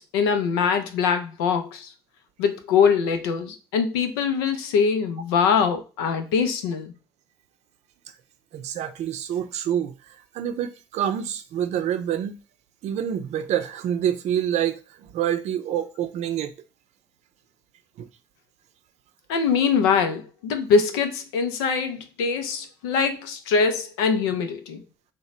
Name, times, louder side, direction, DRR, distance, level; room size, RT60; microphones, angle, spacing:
voice 1, 0.0-1.9 2.4-6.9 19.3-24.8, left 6 dB, 85° left, 0.4 m, -23 dB
voice 2, 8.5-10.0 10.3-12.4 12.8-16.5 18.0-18.1, right 10 dB, 65° right, 0.4 m, -27 dB
3.0 x 2.1 x 3.9 m
hypercardioid pair, 50°, 12 cm